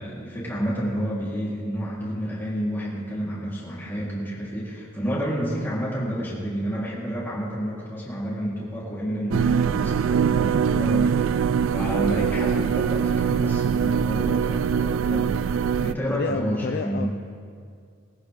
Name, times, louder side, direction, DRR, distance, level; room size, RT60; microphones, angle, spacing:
voice 1, 0.0-17.1, equal, 10° left, -7 dB, 3.9 m, -30 dB
sound 1, 9.3-15.9, right 7 dB, 70° right, 0.3 m, -23 dB
voice 2, 10.4-10.9 16.1-17.1, left 4 dB, 50° left, 8 dB, 0.4 m, -31 dB
21.0 x 14.5 x 3.7 m, 2.3 s
head